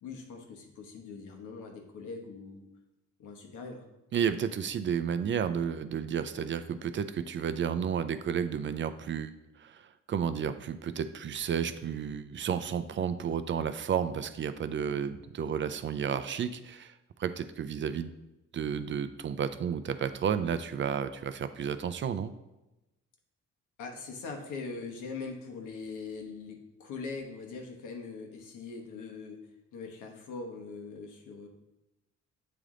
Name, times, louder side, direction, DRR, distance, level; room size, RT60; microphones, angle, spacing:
voice 1, 0.0-2.7 3.2-3.8 23.8-31.5, left 4 dB, 85° left, 2 dB, 1.1 m, -42 dB
voice 2, 4.1-18.1 18.5-22.3, right 7 dB, 40° right, 11 dB, 0.4 m, -32 dB
7.8 x 3.4 x 3.7 m, 0.98 s
cardioid pair, 90°, 30 cm